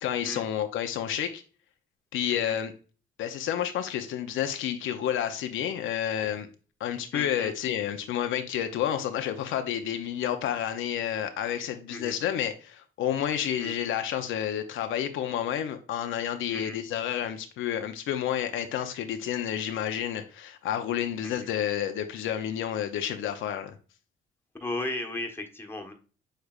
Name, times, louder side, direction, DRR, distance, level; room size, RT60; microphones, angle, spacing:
voice 1, 0.0-1.4 2.1-2.7 3.2-6.5 6.8-23.8, left 10 dB, 80° left, 0.6 m, -30 dB
voice 2, 7.1-7.5 11.9-12.2 13.6-13.8 16.5-16.8 21.2-21.5 24.6-25.9, left 2 dB, 10° left, 1.2 m, -36 dB
6.5 x 3.3 x 2.4 m
cardioid pair, 90°, 20 cm